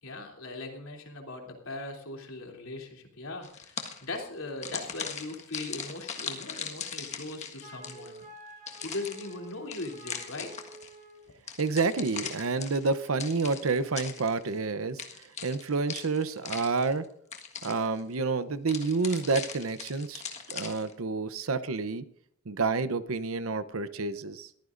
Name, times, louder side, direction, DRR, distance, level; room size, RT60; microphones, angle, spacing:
voice 1, 0.0-8.3 8.8-10.5, left 2 dB, 80° left, 2 dB, 3.2 m, -39 dB
sound 1, 3.4-4.2 4.6-8.2 8.7-10.9 11.5-14.6 15.0-17.0 17.3-18.0 18.7-20.9, left 6 dB, 35° left, 1.6 m, -40 dB
Wind instrument woodwind instrument, 7.6-11.3, right 2 dB, 40° right, 2.8 m, -49 dB
voice 2, 11.6-15.0 15.4-17.0 17.6-20.2 20.5-22.0 22.5-24.5, right 4 dB, 75° right, 13 dB, 0.8 m, -29 dB
22.0 x 14.5 x 2.6 m, 0.64 s
head